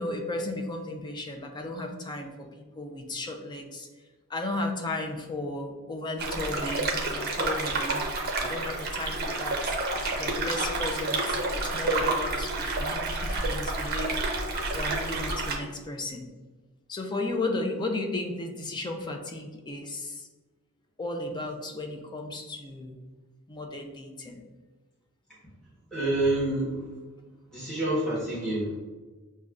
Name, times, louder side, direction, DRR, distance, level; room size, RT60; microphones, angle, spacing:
voice 1, 0.0-3.9 4.3-9.7 10.0-14.2 14.7-16.3 16.9-20.3 21.0-22.9 23.5-24.4, left 2 dB, 20° left, 3 dB, 0.4 m, -34 dB
sound 1, 6.2-15.5, right 2 dB, 45° right, 0.6 m, -29 dB
voice 2, 25.9-27.0 27.5-28.8, right 1 dB, 5° left, -10 dB, 1.0 m, -28 dB
6.1 x 2.2 x 2.4 m, 1.3 s
head